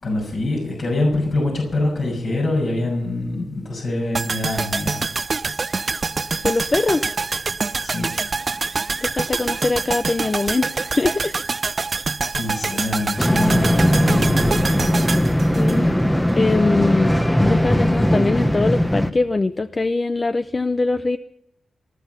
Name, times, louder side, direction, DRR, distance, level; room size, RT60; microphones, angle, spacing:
voice 1, 0.0-5.1 7.8-8.1 12.4-14.9, left 2 dB, 60° left, -2 dB, 6.1 m, -25 dB
sound 1, 4.1-16.3 16.6-16.7, right 4 dB, 40° right, 0.5 m, -26 dB
voice 2, 6.4-7.1 9.0-11.3 15.5-15.9 16.4-21.2, left 3 dB, 30° left, 11 dB, 0.5 m, -22 dB
sound 2, 13.2-19.1, equal, 5° left, 1.0 m, -18 dB
19.5 x 12.0 x 5.7 m, 0.80 s
wide cardioid pair, 115°, 0 cm